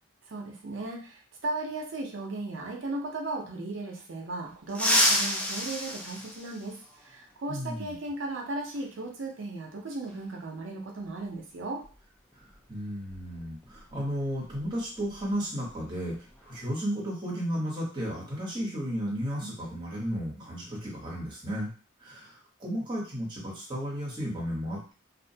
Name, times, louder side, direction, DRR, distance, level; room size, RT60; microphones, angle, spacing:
voice 1, 0.3-11.8, right 2 dB, 65° right, 1 dB, 0.6 m, -36 dB
sound 1, 4.7-7.1 8.7-8.8 10.1-10.2 11.8-12.0 12.3-12.5 13.0-15.2 15.5-15.7 16.1-16.6, equal, 5° left, 0.4 m, -29 dB
voice 2, 7.5-7.9 12.7-21.7 22.0-24.9, equal, 25° right, -4 dB, 1.0 m, -34 dB
2.4 x 2.2 x 2.7 m, 0.38 s
head